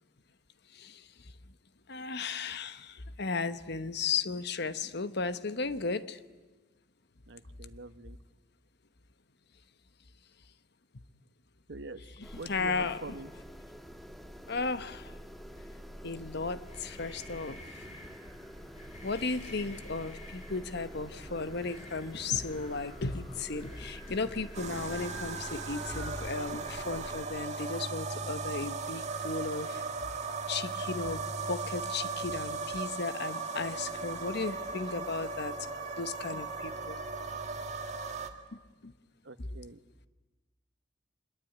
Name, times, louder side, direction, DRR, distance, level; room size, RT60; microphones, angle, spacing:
voice 1, 0.7-1.3 1.9-6.2 12.2-13.2 14.5-15.1 16.0-17.8 19.0-29.8 30.5-35.5 36.0-37.0 38.5-38.9 39.4-39.5, left 4 dB, 60° left, 12 dB, 1.1 m, -35 dB
voice 2, 7.3-8.2 11.7-12.0 12.3-13.3 39.2-39.8, right 2 dB, 65° right, 12 dB, 1.2 m, -45 dB
sound 1, 12.2-27.3, equal, ahead, 1.5 m, -48 dB
sound 2, 16.4-26.2, equal, 35° left, 5.3 m, -49 dB
sound 3, 24.5-38.3, right 4 dB, 35° right, 1.9 m, -37 dB
25.0 x 21.5 x 9.2 m, 1.2 s
head